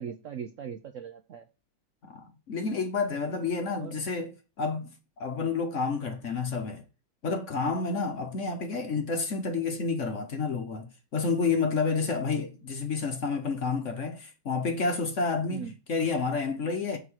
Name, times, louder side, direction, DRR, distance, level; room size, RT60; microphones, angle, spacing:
voice 1, 0.0-1.5 3.8-4.0 7.6-7.7 15.5-15.7, right 7 dB, 70° right, 0.7 m, -40 dB
voice 2, 2.0-4.9 5.2-6.8 7.2-17.0, left 4 dB, 50° left, 1.1 m, -30 dB
9.7 x 3.8 x 6.3 m
omnidirectional pair, 2.1 m